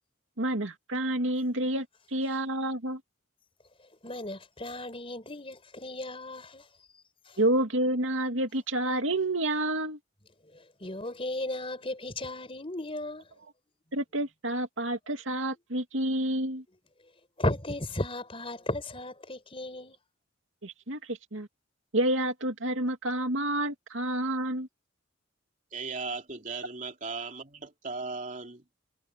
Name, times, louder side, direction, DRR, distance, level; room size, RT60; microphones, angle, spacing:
voice 1, 0.4-3.0 7.4-10.0 13.9-16.6 20.6-21.5 21.9-24.7, right 1 dB, 80° right, 2.5 m, -29 dB
voice 2, 4.0-6.6 7.3-7.4 10.5-13.2 17.4-20.0, left 1 dB, 30° left, 4.9 m, -35 dB
voice 3, 25.7-28.6, right 4 dB, 40° right, 2.9 m, -37 dB
head